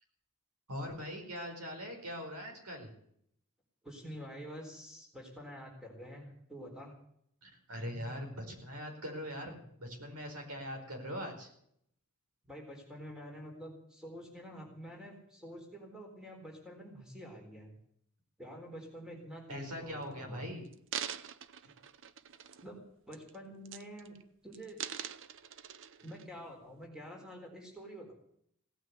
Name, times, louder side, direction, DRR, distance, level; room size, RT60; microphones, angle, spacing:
voice 1, 0.7-2.9 7.4-9.5 10.0-11.5 19.5-20.6, equal, 80° right, 3 dB, 4.7 m, -41 dB
voice 2, 3.8-7.0 9.4-9.6 12.5-17.7 18.4-20.4 22.6-22.8 23.1-24.2 24.4-24.8 26.0-28.1, equal, 5° right, 1 dB, 4.1 m, -48 dB
sound 1, 19.7-20.0 20.6-22.8 23.1-23.4 23.7-24.2 24.5-26.2 26.8-26.9, right 9 dB, 60° right, 0.7 m, -43 dB
17.5 x 9.4 x 8.1 m, 0.68 s
head